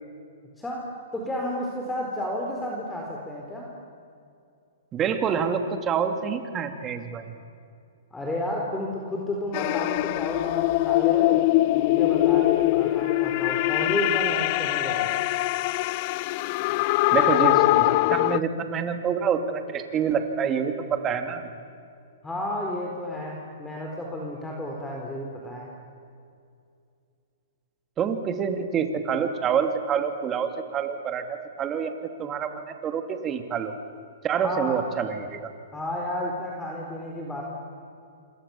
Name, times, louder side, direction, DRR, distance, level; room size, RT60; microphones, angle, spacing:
voice 1, 1.1-3.7 8.1-11.5 11.7-15.2 22.2-25.7 34.4-34.8 35.7-37.4, left 1 dB, 10° left, -1 dB, 4.2 m, -32 dB
voice 2, 4.9-7.4 17.1-21.5 28.0-31.9 32.2-33.7 34.2-35.5, right 7 dB, 25° right, 6 dB, 2.7 m, -27 dB
sound 1, 9.5-18.4, left 18 dB, 45° left, 0.5 m, -22 dB
27.5 x 26.5 x 7.3 m, 2.5 s
hypercardioid pair, 140°, 0 cm